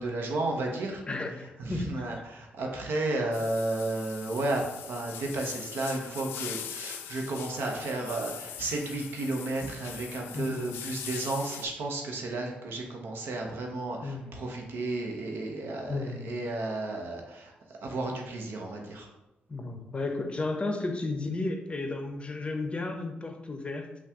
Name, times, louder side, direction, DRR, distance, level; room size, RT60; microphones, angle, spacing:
voice 1, 0.0-1.0 1.6-19.1, right 2 dB, 75° right, 1 dB, 0.8 m, -33 dB
voice 2, 1.1-2.1 10.3-10.8 14.0-14.4 15.9-16.4 19.5-23.9, left 2 dB, 30° left, 5 dB, 0.6 m, -33 dB
sound 1, 3.3-11.7, left 9 dB, 85° left, 0.3 m, -42 dB
5.6 x 2.3 x 3.6 m, 0.97 s
cardioid pair, 65°, 4 cm